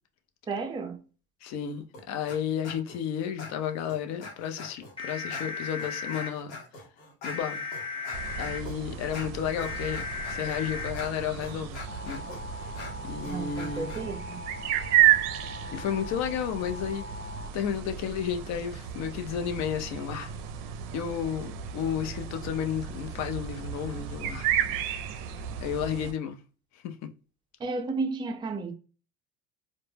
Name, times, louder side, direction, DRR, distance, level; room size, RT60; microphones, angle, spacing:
voice 1, 0.5-1.0 13.3-14.4 27.6-28.7, right 3 dB, 15° right, 0.4 m, -33 dB
voice 2, 1.4-6.6 7.2-7.6 8.4-11.8 12.1-12.2 13.0-13.9 15.7-17.1 17.5-20.3 20.9-24.8 25.6-26.4 26.8-27.1, left 8 dB, 55° left, 0.5 m, -32 dB
sound 1, 1.9-2.4 2.6-3.0 3.4-4.9 5.3-14.0, left 3 dB, 90° left, 0.8 m, -44 dB
sound 2, 5.0-6.3 7.3-8.6 9.6-10.9 11.9-17.5, left 4 dB, 15° left, 0.8 m, -38 dB
sound 3, 8.1-26.1, right 11 dB, 70° right, 0.5 m, -32 dB
2.1 x 2.1 x 3.2 m
supercardioid pair, 110°, 33 cm